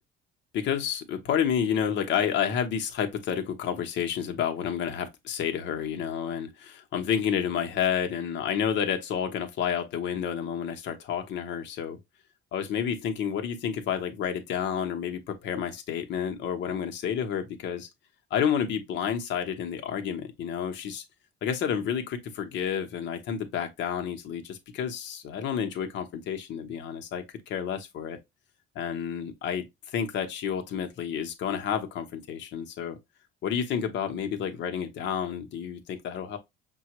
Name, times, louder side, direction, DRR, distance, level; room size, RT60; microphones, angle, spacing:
voice 1, 0.5-12.0 12.5-17.9 18.3-21.0 21.4-28.2 28.7-29.7 29.9-33.0 33.4-36.4, left 8 dB, 65° left, 0.9 m, -30 dB
5.5 x 2.3 x 2.9 m
cardioid pair, 110°, 20 cm